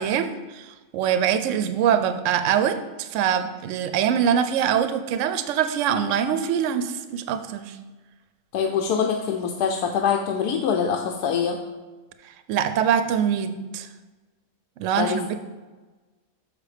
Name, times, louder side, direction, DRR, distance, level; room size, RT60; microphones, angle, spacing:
voice 1, 0.0-7.8 12.5-13.9 14.8-15.4, right 8 dB, 65° right, 10 dB, 0.8 m, -24 dB
voice 2, 8.5-11.6 15.0-15.4, left 7 dB, 90° left, 3 dB, 1.2 m, -24 dB
6.7 x 5.0 x 4.9 m, 1.2 s
omnidirectional pair, 1.7 m